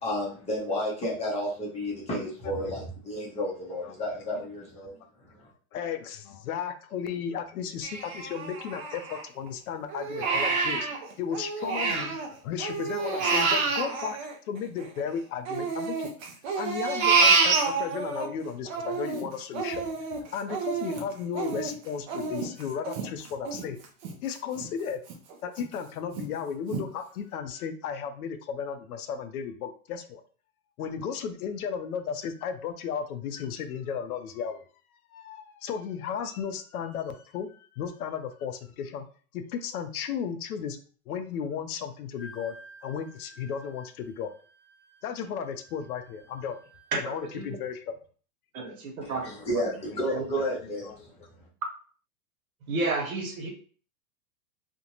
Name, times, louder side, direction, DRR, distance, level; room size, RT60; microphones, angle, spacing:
voice 1, 0.0-5.0 49.0-50.9, equal, 15° left, -4 dB, 0.6 m, -31 dB
voice 2, 2.2-2.7 3.8-3.9 4.3-4.5 5.7-10.9 11.2-12.1 12.4-14.2 14.5-23.8 24.2-25.0 25.4-30.2 30.8-34.6 35.1-39.1 39.3-40.8 41.1-42.5 42.8-44.3 45.0-46.6 47.0-48.0 50.3-50.4 50.8-51.1, left 7 dB, 70° left, 8 dB, 0.6 m, -34 dB
Crying sobbing, 7.8-9.5 9.9-12.3 12.6-15.0 15.5-18.3 18.7-24.1 24.6-24.7 25.1-25.7 26.2-26.3 26.7-26.8, right 4 dB, 30° right, 0.5 m, -28 dB
Wind instrument woodwind instrument, 42.2-47.6, equal, 5° right, 1.0 m, -53 dB
voice 3, 48.5-49.7 50.1-50.3 52.7-53.5, right 3 dB, 65° right, 2 dB, 1.1 m, -31 dB
2.5 x 2.1 x 2.9 m, 0.42 s
hypercardioid pair, 140°, 45 cm